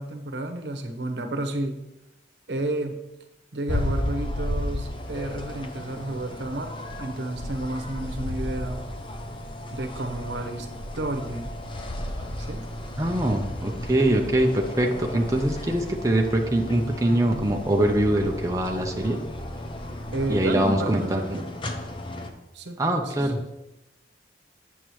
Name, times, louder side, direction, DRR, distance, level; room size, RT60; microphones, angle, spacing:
voice 1, 0.0-1.8 2.5-3.0 3.5-6.7 7.0-8.9 9.7-10.7 11.0-11.5 12.4-12.7 20.1-21.4 22.5-22.8 23.1-23.5, right 1 dB, 75° right, 6 dB, 0.9 m, -31 dB
sound 1, 3.7-22.3, left 1 dB, 30° left, 0.6 m, -34 dB
voice 2, 13.0-19.2 20.3-21.4 22.8-23.4, right 1 dB, 20° right, 1 dB, 0.6 m, -23 dB
8.4 x 7.2 x 3.1 m, 0.94 s
head